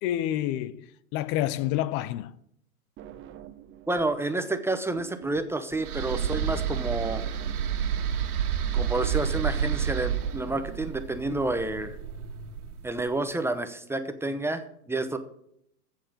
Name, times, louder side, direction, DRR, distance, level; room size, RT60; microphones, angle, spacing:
voice 1, 0.0-2.4, left 13 dB, 25° left, 0.4 m, -29 dB
sound 1, 3.0-4.2 4.5-11.0, right 9 dB, 25° right, 1.1 m, -47 dB
voice 2, 3.9-7.2 8.7-12.0 12.8-15.2, right 2 dB, 5° right, 0.8 m, -29 dB
sound 2, 5.8-13.0, right 8 dB, 80° right, 2.3 m, -30 dB
14.5 x 7.6 x 5.2 m
hypercardioid pair, 120°, 45 cm